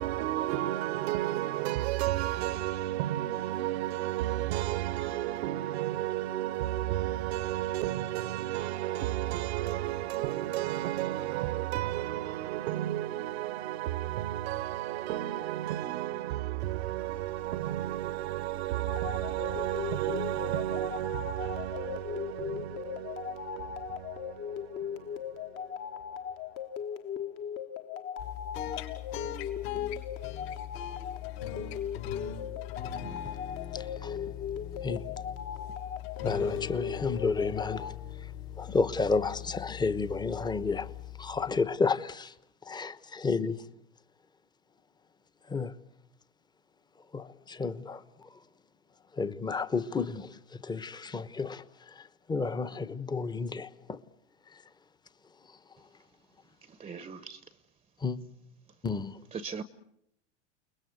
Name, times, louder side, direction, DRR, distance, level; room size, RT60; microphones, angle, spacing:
voice 1, 0.0-26.0, right 14 dB, 65° right, 1.1 m, -33 dB
sound 1, 18.9-38.0, left 8 dB, 35° left, 1.4 m, -38 dB
sound 2, 28.2-41.8, left 10 dB, 60° left, 6.2 m, -41 dB
voice 2, 33.7-34.2 34.8-35.1 36.2-37.9 38.6-40.9 41.2-42.3 42.7-43.6 45.5-45.7 47.1-48.0 49.2-51.6 52.3-54.0 58.0-58.2 58.8-59.1, left 4 dB, 10° left, 1.1 m, -31 dB
voice 3, 56.6-57.6 59.3-59.6, right 5 dB, 15° right, 0.9 m, -40 dB
30.0 x 21.0 x 7.9 m
hypercardioid pair, 115°, 35 cm